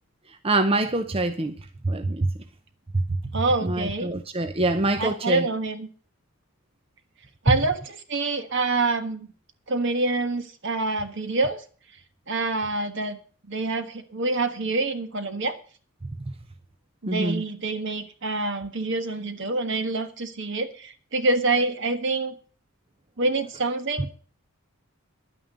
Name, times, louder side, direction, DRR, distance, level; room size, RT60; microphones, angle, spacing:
voice 1, 0.3-1.5 1.8-2.3 2.9-3.2 3.6-5.5 7.5-7.6 16.0-16.4 17.1-17.4, right 2 dB, 25° right, 0.7 m, -25 dB
voice 2, 3.3-4.1 5.0-5.9 7.4-7.8 8.1-9.3 9.7-11.6 12.3-13.2 13.5-15.5 17.0-22.3 23.2-24.1, right 3 dB, 55° right, 1.5 m, -26 dB
11.0 x 9.2 x 6.7 m
head